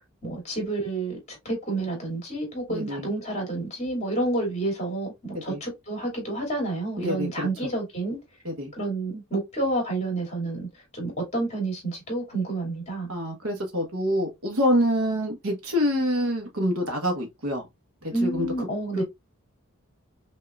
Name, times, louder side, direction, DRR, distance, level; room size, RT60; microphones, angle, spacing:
voice 1, 0.2-8.2 8.7-10.7 10.9-13.1 18.1-19.0, right 2 dB, 30° left, 2.5 m, -29 dB
voice 2, 2.7-3.0 5.5-5.6 7.0-7.5 8.4-8.7 13.1-17.6 18.0-18.5 19.0-19.1, equal, 80° right, 1.4 m, -26 dB
5.5 x 2.9 x 2.4 m
head